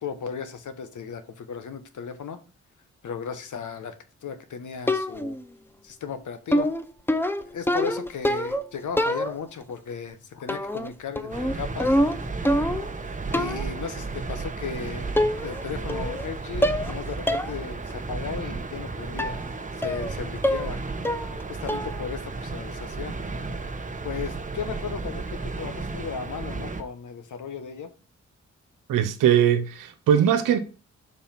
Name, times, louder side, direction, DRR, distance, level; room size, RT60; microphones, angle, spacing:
voice 1, 0.0-2.4 3.0-4.0 4.2-5.4 5.8-6.7 7.4-12.0 13.3-15.1 15.4-19.4 19.7-20.8 21.5-23.2 24.0-27.9, left 6 dB, 65° left, 1.1 m, -35 dB
sound 1, 4.9-5.4 6.5-8.7 9.0-9.6 10.5-10.9 11.2-13.0 13.3-13.7 14.6-14.7 15.2-15.6 15.9-16.3 16.6-16.9 17.3-17.5 17.9-18.0 19.2-19.4 19.8-20.1 20.4-20.8 21.0-21.4 21.7-22.0, equal, 5° left, 0.6 m, -25 dB
sound 2, 11.3-26.8, right 3 dB, 25° right, 1.0 m, -33 dB
voice 2, 28.9-30.6, right 9 dB, 80° right, 0.6 m, -20 dB
5.4 x 4.2 x 5.8 m
supercardioid pair, 50°, 32 cm